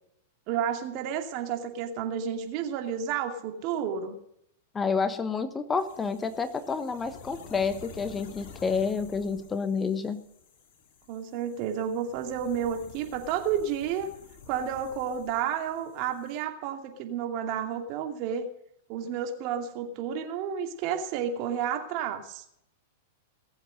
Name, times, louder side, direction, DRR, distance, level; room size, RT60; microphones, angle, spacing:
voice 1, 0.5-4.2 11.1-14.1 14.5-18.5 18.9-22.4, right 8 dB, 45° right, 5 dB, 2.5 m, -31 dB
voice 2, 4.7-10.2, left 5 dB, 20° left, 12 dB, 1.1 m, -29 dB
sound 1, 5.8-16.4, left 6 dB, 55° left, 2.7 m, -50 dB
19.0 x 8.0 x 6.6 m, 0.74 s
hypercardioid pair, 105°, 0 cm